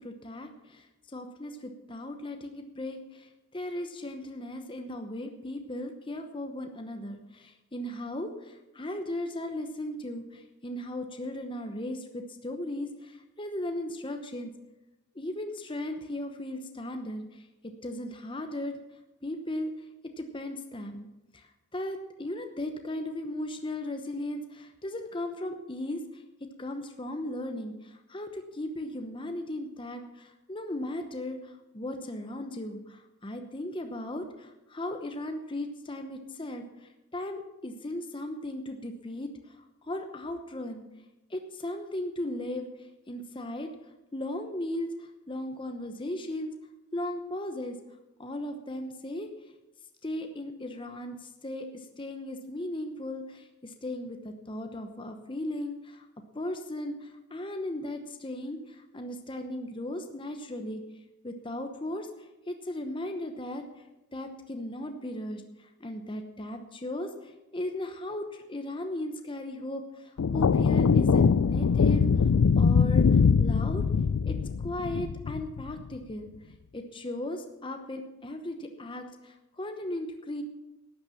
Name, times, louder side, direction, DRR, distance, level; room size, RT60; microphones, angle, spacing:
voice 1, 0.0-3.3 3.5-14.5 15.1-18.8 19.2-19.7 20.2-21.1 21.3-26.2 26.6-40.8 41.3-42.6 43.1-43.7 44.1-46.5 46.9-47.8 48.2-49.3 50.0-56.1 56.3-60.8 61.2-63.6 64.1-72.2 72.6-73.8 74.2-74.4 74.6-76.3 76.7-80.4, left 1 dB, 25° left, 5 dB, 0.9 m, -37 dB
sound 1, 70.2-75.8, left 5 dB, 85° left, 0.4 m, -22 dB
12.0 x 8.8 x 7.0 m, 0.95 s
head